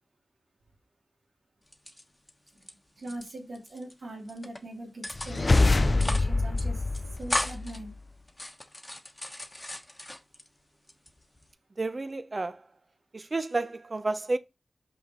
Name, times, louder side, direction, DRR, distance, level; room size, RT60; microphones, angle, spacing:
sound 1, 1.7-2.7 3.0-3.9 4.3-4.6 5.0-5.5 5.9-6.3 6.6-6.7 6.9-7.8 8.3-10.5 10.9-11.5, left 1 dB, 20° left, 1.2 m, -36 dB
voice 1, 3.0-6.8 7.2-7.9, right 1 dB, 90° right, 2.6 m, -41 dB
sound 2, 5.1-7.9, left 2 dB, 40° left, 0.4 m, -25 dB
voice 2, 11.8-12.6 13.3-14.4, right 2 dB, 45° right, 0.6 m, -30 dB
5.7 x 5.0 x 4.2 m
wide cardioid pair, 75°, 0 cm